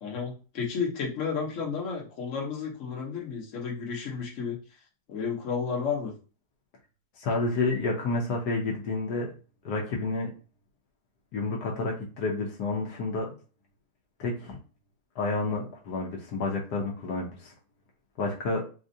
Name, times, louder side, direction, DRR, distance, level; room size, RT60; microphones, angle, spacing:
voice 1, 0.0-4.6 5.1-6.1, left 6 dB, 55° left, -2 dB, 1.3 m, -32 dB
voice 2, 7.2-9.3 9.6-10.3 11.3-13.3 14.2-14.6 15.2-17.5 18.2-18.6, left 3 dB, 80° left, -1 dB, 1.3 m, -30 dB
4.1 x 2.4 x 2.7 m, 0.36 s
omnidirectional pair, 1.7 m